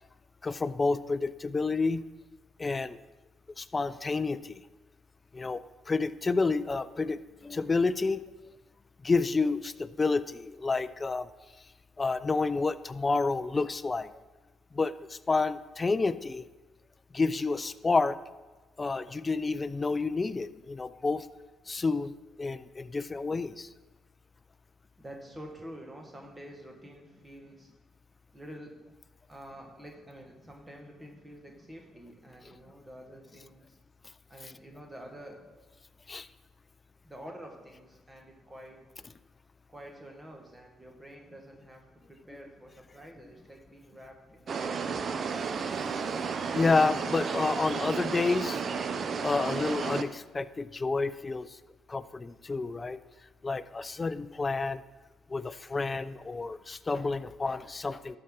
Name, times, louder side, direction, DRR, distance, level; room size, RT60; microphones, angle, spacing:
voice 1, 0.4-2.0 2.6-3.0 3.6-4.6 5.3-5.6 5.9-8.2 9.0-11.3 12.0-14.1 14.7-16.5 17.1-18.2 18.8-21.3 21.7-22.1 22.4-23.7 36.1-36.3 46.5-48.6 49.2-51.6 51.9-53.0 53.4-54.8 55.3-58.2, left 3 dB, 25° left, 14 dB, 0.4 m, -29 dB
voice 2, 25.0-27.7 28.3-28.8 29.3-33.8 34.3-35.4 37.0-38.8 39.7-45.2, equal, 20° right, 2 dB, 1.5 m, -48 dB
sound 1, 44.5-50.0, right 5 dB, 50° right, 0.6 m, -32 dB
12.5 x 5.5 x 3.8 m, 1.2 s
supercardioid pair, 75°, 0 cm